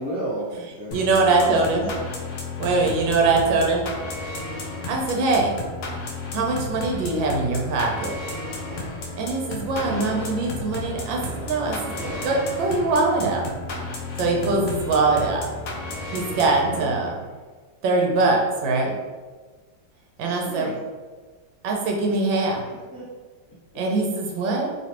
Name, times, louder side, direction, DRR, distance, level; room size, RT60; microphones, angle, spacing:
voice 1, 0.0-1.7 9.7-10.0 16.5-16.9 20.2-20.8 22.1-22.2 22.6-23.1, right 1 dB, 50° left, -8 dB, 0.9 m, -34 dB
sound 1, 0.9-17.2, left 2 dB, 90° left, 0.6 m, -33 dB
voice 2, 0.9-1.9 2.6-3.9 4.9-5.5 6.3-8.1 9.2-13.4 14.2-15.4 16.1-17.1 17.8-18.9 20.2-20.7 21.6-22.6 23.7-24.7, right 3 dB, 80° right, 0 dB, 1.4 m, -22 dB
sound 2, 8.3-13.4, right 1 dB, 60° right, 1.4 m, -40 dB
3.1 x 3.1 x 2.9 m, 1.4 s
omnidirectional pair, 2.0 m